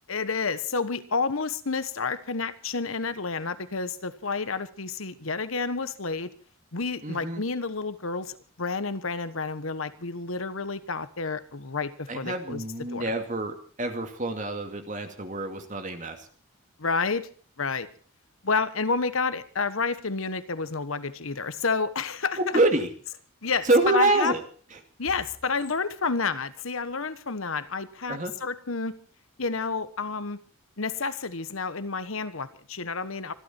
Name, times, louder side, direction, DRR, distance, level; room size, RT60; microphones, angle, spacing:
voice 1, 0.1-6.3 6.7-13.1 16.8-17.3 17.6-17.9 18.4-22.6 23.4-24.3 25.0-28.9 29.4-30.4 30.8-33.3, left 4 dB, 75° left, 13 dB, 1.3 m, -30 dB
voice 2, 7.0-7.4 12.1-16.2 22.4-22.9 23.6-24.4 28.1-28.3, right 2 dB, 35° right, 6 dB, 2.4 m, -26 dB
25.5 x 12.0 x 4.4 m, 0.42 s
head